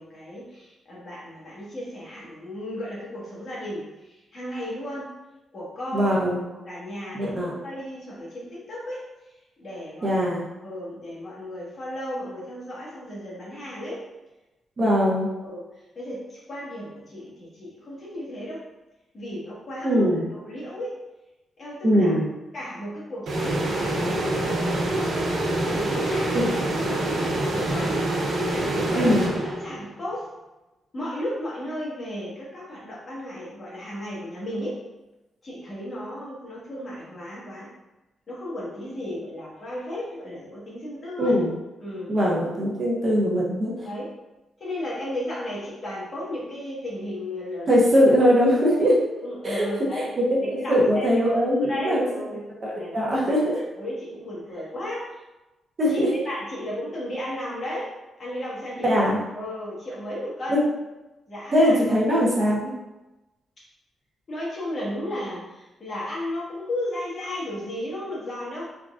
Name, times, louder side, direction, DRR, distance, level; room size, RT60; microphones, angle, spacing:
voice 1, 0.0-5.1 5.5-6.2 6.5-9.0 9.6-10.3 10.6-14.0 15.4-15.6 15.9-18.6 19.1-20.9 21.6-22.2 22.5-28.0 28.5-30.3 30.9-34.8 35.4-37.7 38.3-41.4 41.8-42.3 43.8-44.1 44.6-47.7 49.2-50.1 50.4-52.4 52.7-53.3 53.7-55.2 55.9-57.9 58.2-59.0 59.3-60.7 61.3-62.3 64.3-68.7, left 1 dB, 35° left, -7 dB, 1.3 m, -34 dB
voice 2, 5.9-6.4 7.1-7.5 10.0-10.4 14.8-15.3 19.8-20.2 21.8-22.3 26.3-26.6 28.9-29.3 41.2-41.5 42.1-43.9 47.7-49.0 49.4-49.7 50.2-50.3 50.5-52.0 52.6-53.6 55.8-56.1 58.8-59.2 60.5-60.6 61.5-62.7, equal, 35° right, -4 dB, 0.8 m, -21 dB
sound 1, 23.3-29.9, right 1 dB, 80° right, 0.9 m, -26 dB
3.6 x 3.6 x 2.4 m, 1.0 s
wide cardioid pair, 150°, 0 cm